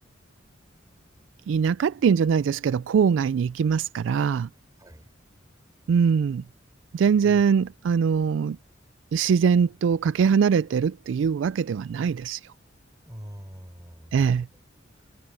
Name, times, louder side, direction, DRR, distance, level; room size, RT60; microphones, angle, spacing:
voice 1, 1.5-4.5 5.9-6.4 6.9-8.6 9.1-12.4 14.1-14.5, right 6 dB, 70° right, 0.3 m, -22 dB
voice 2, 13.0-14.5 14.9-15.1, equal, 20° right, 5.9 m, -43 dB
head